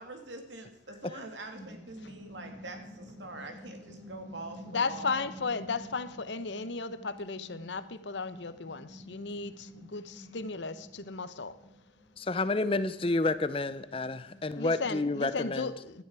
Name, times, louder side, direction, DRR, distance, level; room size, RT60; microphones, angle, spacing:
voice 1, 0.0-5.3, right 2 dB, 85° right, 5 dB, 2.6 m, -44 dB
sound 1, 1.2-15.3, equal, ahead, 4.8 m, -51 dB
voice 2, 4.7-11.5 14.6-16.0, left 4 dB, 80° left, 13 dB, 0.9 m, -35 dB
voice 3, 12.2-15.7, left 2 dB, 30° left, 14 dB, 0.6 m, -30 dB
17.0 x 11.5 x 4.8 m, 0.87 s
head